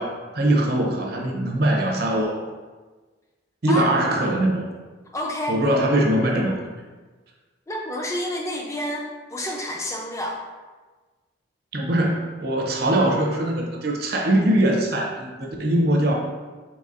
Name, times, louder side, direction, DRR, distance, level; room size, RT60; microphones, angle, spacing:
voice 1, 0.0-2.4 3.6-4.7 5.5-6.7 11.7-16.1, right 1 dB, 55° right, -1 dB, 0.6 m, -22 dB
voice 2, 5.1-5.6 7.7-10.4, left 1 dB, 15° left, -1 dB, 0.5 m, -29 dB
4.1 x 3.9 x 2.5 m, 1.3 s
head